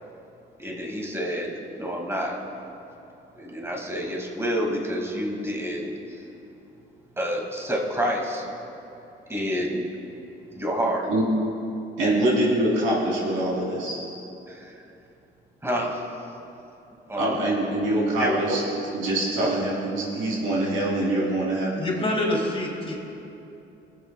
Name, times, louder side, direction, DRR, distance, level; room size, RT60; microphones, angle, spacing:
voice 1, 0.6-2.4 3.4-6.2 7.2-8.5 9.3-9.8 10.5-11.1 12.0-12.2 14.5-14.8 15.6-16.1 17.1-17.4 18.2-18.6, equal, 15° right, -1 dB, 1.9 m, -28 dB
voice 2, 12.0-14.0 17.2-18.6 18.9-21.7, right 1 dB, 90° right, -5 dB, 2.8 m, -24 dB
voice 3, 21.8-23.0, left 1 dB, 30° left, -1 dB, 2.0 m, -26 dB
24.5 x 8.3 x 2.2 m, 2.9 s
cardioid pair, 90°, 20 cm